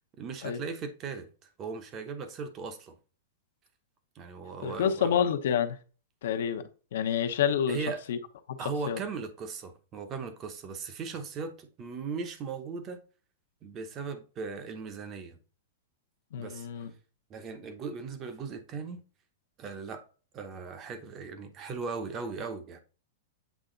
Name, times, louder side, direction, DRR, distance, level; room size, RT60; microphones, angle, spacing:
voice 1, 0.2-3.0 4.1-5.1 7.7-8.0 8.6-13.0 13.6-15.4 16.4-16.7 17.3-19.0 19.6-20.0 20.3-22.8, right 5 dB, 20° right, 0.8 m, -38 dB
voice 2, 4.6-5.8 6.2-6.6 6.9-8.2 8.5-8.6 8.9-9.0 16.3-16.9, left 8 dB, 60° left, 0.8 m, -28 dB
8.2 x 3.5 x 3.8 m
supercardioid pair, 175°, 0 cm